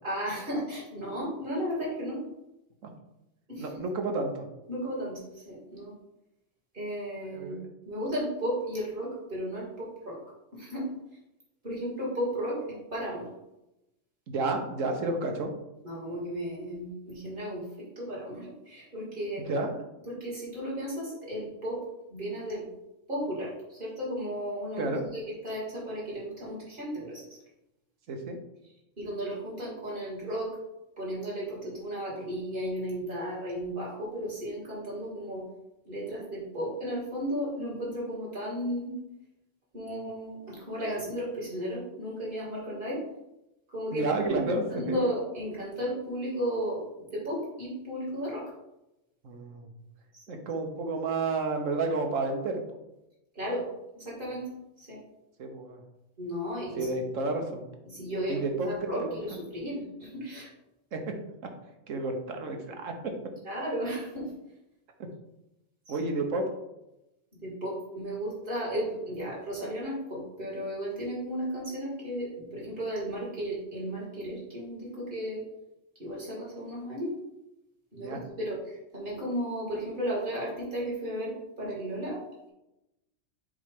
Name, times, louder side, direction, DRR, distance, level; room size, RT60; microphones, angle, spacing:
voice 1, 0.0-2.2 3.5-3.7 4.7-5.9 6.7-7.6 7.8-10.2 10.5-10.9 11.6-12.6 12.9-13.3 15.8-19.4 20.1-21.8 22.1-22.7 23.1-27.2 29.0-30.5 31.0-35.4 35.8-39.0 39.7-43.0 43.7-48.4 50.1-50.2 53.3-53.6 54.0-54.5 54.8-55.0 56.2-56.9 57.9-58.4 58.6-60.5 63.4-64.3 65.9-66.0 67.4-75.4 76.0-77.2 77.9-82.2, equal, 40° right, -6 dB, 2.8 m, -34 dB
voice 2, 3.6-4.4 7.2-7.6 14.3-15.5 19.4-19.7 24.8-25.0 28.1-28.4 43.9-45.0 49.2-49.7 50.3-52.6 55.4-55.8 56.8-57.6 58.3-58.7 59.0-59.2 60.9-61.2 61.9-63.1 65.0-65.1 65.9-66.5 77.9-78.2, right 3 dB, 70° right, 4 dB, 1.3 m, -31 dB
7.4 x 3.2 x 5.2 m, 0.92 s
omnidirectional pair, 1.4 m